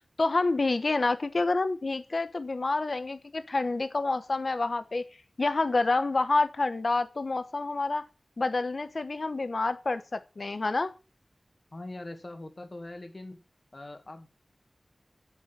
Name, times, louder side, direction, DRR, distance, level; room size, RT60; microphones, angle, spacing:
voice 1, 0.2-5.0 5.4-8.0 8.4-10.9, left 3 dB, 70° left, 11 dB, 1.0 m, -28 dB
voice 2, 11.7-13.4 13.7-14.3, left 2 dB, 50° left, 6 dB, 2.0 m, -42 dB
8.7 x 8.1 x 7.4 m, 0.33 s
wide cardioid pair, 60°, 0 cm